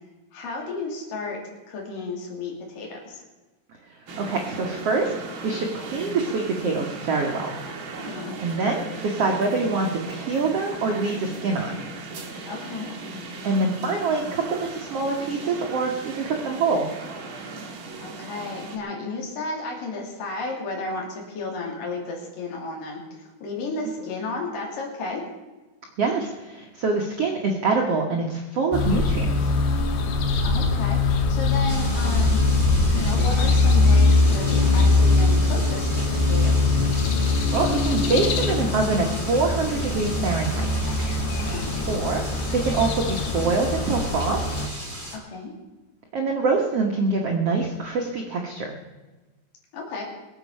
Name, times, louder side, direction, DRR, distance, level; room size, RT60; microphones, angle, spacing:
voice 1, 0.3-1.4 1.7-3.2 8.0-8.4 12.4-12.9 18.0-25.2 30.4-31.0 31.3-32.4 32.9-36.8 41.3-41.7 45.1-45.5 49.7-50.0, left 3 dB, 55° left, -1 dB, 4.1 m, -33 dB
sound 1, 4.1-18.8, right 3 dB, 60° right, 1.3 m, -37 dB
voice 2, 4.2-5.1 5.4-7.5 8.4-11.7 13.4-16.8 26.0-29.5 37.5-40.7 41.9-42.2 42.5-44.6 46.1-48.7, right 3 dB, 85° right, 1 dB, 1.3 m, -25 dB
sound 2, 28.7-44.7, left 3 dB, 70° left, 3.0 m, -22 dB
sound 3, 31.7-45.2, right 1 dB, 5° left, 2.1 m, -36 dB
22.5 x 8.3 x 5.5 m, 1.2 s
omnidirectional pair, 4.9 m